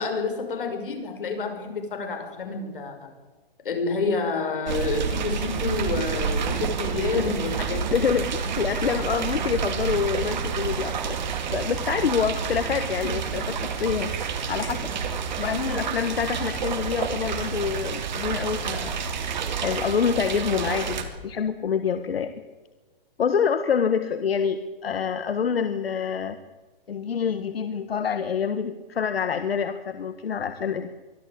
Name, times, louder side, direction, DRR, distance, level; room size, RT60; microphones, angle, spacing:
voice 1, 0.0-3.1 3.6-8.0, left 4 dB, 65° left, 4 dB, 6.0 m, -29 dB
sound 1, 4.7-21.0, right 6 dB, 50° right, 2.9 m, -29 dB
voice 2, 7.9-11.2 11.5-14.1 14.5-14.9 15.4-18.9 19.6-22.3 23.2-26.4 26.9-30.9, left 7 dB, 90° left, 10 dB, 1.5 m, -26 dB
24.0 x 14.5 x 8.6 m, 1.3 s
hypercardioid pair, 175°, 29 cm